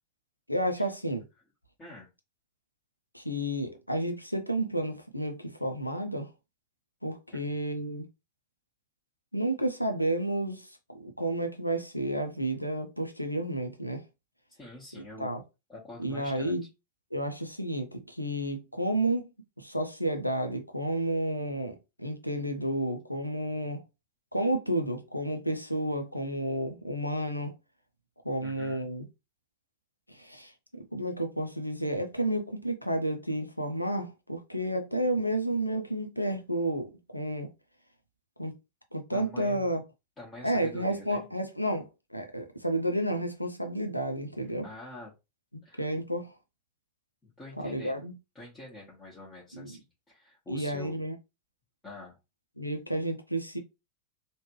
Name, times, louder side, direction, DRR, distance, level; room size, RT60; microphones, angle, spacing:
voice 1, 0.5-1.2 3.1-6.3 7.0-8.0 9.3-10.7 10.9-14.0 15.2-15.4 16.0-16.6 17.1-19.3 19.6-23.8 24.3-27.5 28.2-29.0 30.1-30.5 30.9-37.5 38.4-38.5 38.9-39.8 40.4-44.7 45.8-46.3 47.6-48.1 49.5-49.7 50.5-51.2 52.6-53.6, right 1 dB, 90° left, 0.6 m, -31 dB
voice 2, 14.5-15.3 15.7-16.5 28.4-28.9 39.1-39.7 40.2-41.2 44.6-45.1 45.6-45.9 47.2-48.0 48.3-51.0 51.8-52.2, left 1 dB, 20° left, 1.3 m, -46 dB
3.1 x 2.5 x 3.1 m
figure-of-eight pair, 90°, 0 cm